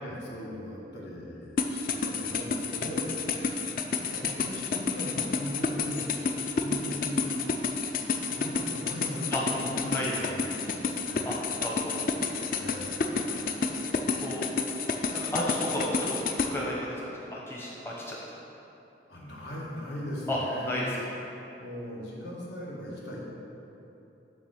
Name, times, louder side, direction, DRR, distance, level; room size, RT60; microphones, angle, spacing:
voice 1, 0.0-3.1 4.1-7.3 8.2-11.4 12.5-13.3 19.1-20.7 21.5-23.2, left 1 dB, 75° left, -4 dB, 1.4 m, -39 dB
sound 1, 1.6-16.5, left 5 dB, 50° left, 0.4 m, -30 dB
voice 2, 11.6-12.0 14.2-14.4 15.1-18.2 20.3-20.4 20.6-20.9, left 1 dB, 15° left, -5 dB, 0.7 m, -33 dB
6.9 x 3.7 x 6.2 m, 3.0 s
head